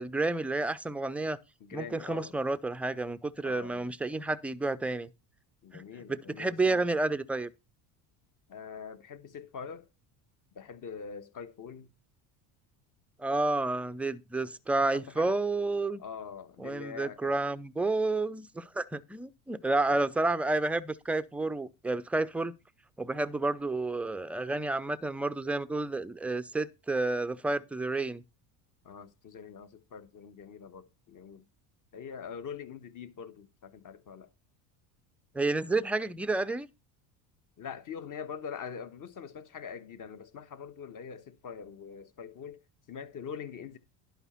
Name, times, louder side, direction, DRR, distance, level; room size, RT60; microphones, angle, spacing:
voice 1, 0.0-1.4 1.7-5.1 5.7-5.8 6.1-7.5 13.2-16.0 16.6-22.5 23.0-28.2 35.3-36.7, right 2 dB, 5° right, 0.4 m, -30 dB
voice 2, 1.6-2.6 3.4-3.9 5.6-7.0 8.5-9.9 10.5-11.9 14.9-15.4 15.9-17.3 19.9-20.0 28.8-31.4 31.9-34.3 37.6-42.6 42.9-43.8, left 6 dB, 40° left, 1.4 m, -44 dB
11.0 x 5.1 x 5.6 m
supercardioid pair, 90°, 49 cm